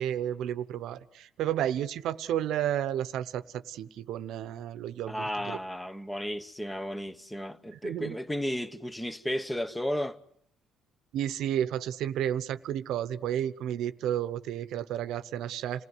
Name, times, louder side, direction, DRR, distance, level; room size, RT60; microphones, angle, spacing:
voice 1, 0.0-5.6 7.7-8.2 11.1-15.8, right 11 dB, 70° right, 0.9 m, -32 dB
voice 2, 5.1-10.2, equal, 5° left, 0.9 m, -33 dB
28.0 x 17.0 x 9.5 m
cardioid pair, 125°, 0 cm